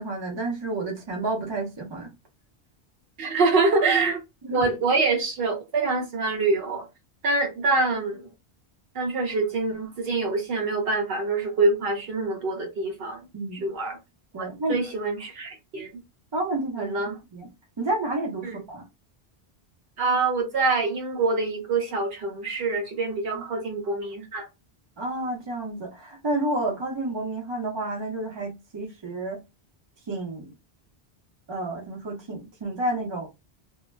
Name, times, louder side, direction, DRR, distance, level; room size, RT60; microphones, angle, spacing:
voice 1, 0.0-2.1 4.4-4.6 13.3-13.7 14.3-14.8 16.3-17.5 17.8-18.9 23.3-23.4 25.0-29.4 30.1-30.5 31.5-33.3, right 2 dB, 30° right, 0.7 m, -30 dB
voice 2, 3.2-4.2 4.5-6.9 7.2-8.3 8.9-13.2 13.6-14.0 14.4-16.0 16.8-17.2 18.4-18.6 20.0-24.5, right 3 dB, 70° right, 0.8 m, -25 dB
2.1 x 2.1 x 3.1 m
omnidirectional pair, 1.1 m